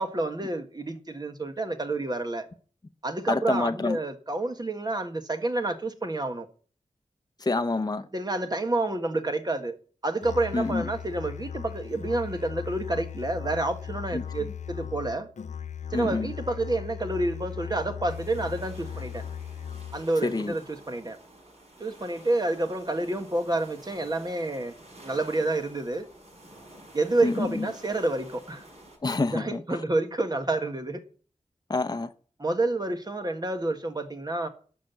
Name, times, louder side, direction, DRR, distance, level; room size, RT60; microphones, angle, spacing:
voice 1, 0.0-2.5 3.0-6.5 8.1-9.7 10.0-15.3 15.9-19.2 19.9-21.2 21.8-26.0 26.9-28.6 29.3-31.0 32.4-34.5, right 2 dB, 35° right, 1.6 m, -29 dB
voice 2, 3.3-4.0 7.4-8.1 10.5-10.9 14.1-14.2 15.9-16.3 20.2-20.5 27.2-27.7 29.0-29.6 31.7-32.1, left 3 dB, 30° left, 0.8 m, -27 dB
Musical instrument, 10.2-20.2, left 8 dB, 75° left, 0.6 m, -38 dB
sound 1, 18.1-29.0, right 1 dB, 55° right, 6.2 m, -50 dB
12.5 x 5.9 x 9.4 m
wide cardioid pair, 100°, 12 cm